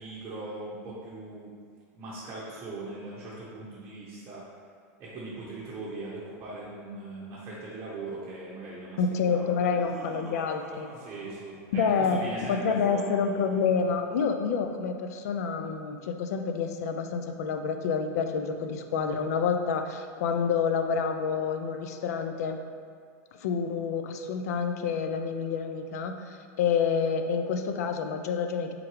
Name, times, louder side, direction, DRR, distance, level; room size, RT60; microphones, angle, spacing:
voice 1, 0.0-1.5 1.9-4.4 5.0-9.0 9.3-9.8 10.9-13.1, right 2 dB, 25° right, -9 dB, 0.8 m, -40 dB
voice 2, 9.0-10.9 11.7-12.2 12.5-22.6 23.4-28.7, left 6 dB, 80° left, 6 dB, 0.4 m, -28 dB
Laughter, 9.6-11.7 12.2-14.5, right 2 dB, 85° right, 0.7 m, -48 dB
4.5 x 3.7 x 3.1 m, 2.1 s
supercardioid pair, 135°, 8 cm